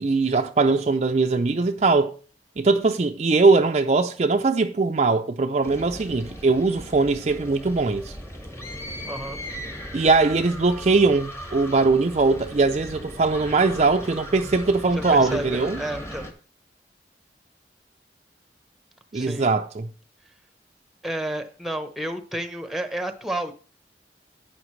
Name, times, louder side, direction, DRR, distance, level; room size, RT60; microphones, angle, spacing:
voice 1, 0.0-2.1 2.6-8.1 9.9-15.8 19.1-19.9, right 3 dB, 40° right, 0.4 m, -21 dB
sound 1, 5.6-16.3, equal, 15° left, 1.3 m, -38 dB
voice 2, 9.0-9.4 14.9-16.3 19.1-19.5 21.0-23.5, right 1 dB, ahead, 0.9 m, -31 dB
11.0 x 9.1 x 3.2 m
head